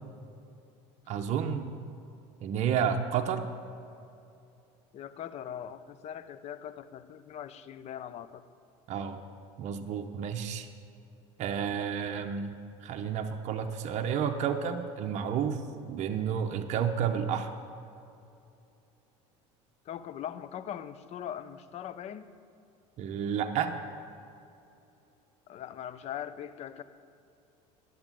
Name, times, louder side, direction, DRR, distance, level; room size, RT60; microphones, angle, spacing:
voice 1, 1.1-1.7 2.4-3.5 8.9-9.2 9.6-10.7 11.4-12.5 12.8-17.5 23.0-23.8, right 7 dB, 50° right, 5 dB, 0.9 m, -31 dB
voice 2, 4.9-8.4 19.9-22.3 25.5-26.8, left 10 dB, 45° left, 12 dB, 0.7 m, -41 dB
10.5 x 8.1 x 9.1 m, 2.7 s
supercardioid pair, 120°, 15 cm